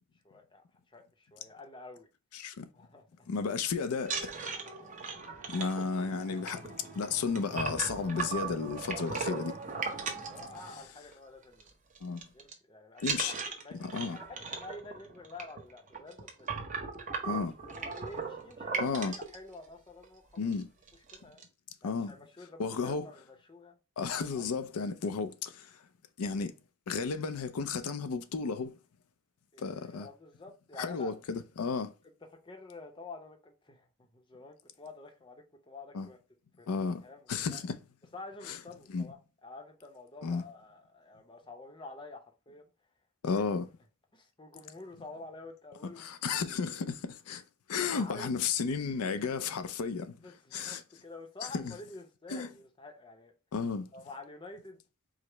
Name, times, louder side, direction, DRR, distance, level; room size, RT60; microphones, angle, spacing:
voice 1, 0.2-2.1 2.7-3.3 4.3-4.5 9.9-11.7 12.3-16.5 17.1-20.2 21.1-21.4 21.8-23.8 24.3-24.5 24.7-24.9 29.5-31.2 32.2-33.9 34.1-36.2 36.6-36.7 37.0-37.6 38.1-42.6 43.3-43.4 44.1-46.1 47.9-48.3 50.2-53.3 53.9-54.8, left 3 dB, 20° left, 0.6 m, -49 dB
voice 2, 2.3-2.6 3.3-4.3 5.5-9.5 12.0-12.2 13.0-13.3 13.7-14.2 17.2-17.5 18.8-19.1 20.4-20.7 21.8-22.1 22.6-23.1 24.0-25.8 26.2-26.5 26.9-28.8 29.6-30.1 30.8-31.9 35.9-36.1 36.7-37.0 37.3-37.7 38.5-38.6 38.9-39.1 40.2-40.4 43.2-43.7 46.0-47.4 47.7-50.2 50.5-50.8 51.5-51.7 52.3-52.5 53.5-53.9, left 5 dB, 90° left, 0.5 m, -33 dB
sound 1, 4.0-11.1 11.4-11.7 11.9-12.5 13.0-19.3 20.0-20.1 20.4-20.6 20.9-21.4, right 5 dB, 35° right, 0.7 m, -38 dB
4.8 x 2.0 x 4.4 m
head